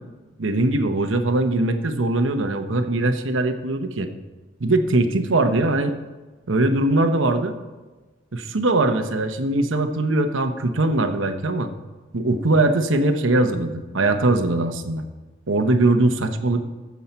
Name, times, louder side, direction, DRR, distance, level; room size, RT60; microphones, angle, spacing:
voice 1, 0.4-4.1 4.6-5.9 6.5-7.5 8.3-11.7 12.1-15.1 15.5-16.6, right 2 dB, 75° right, 7 dB, 0.9 m, -21 dB
14.0 x 7.3 x 4.4 m, 1.3 s
head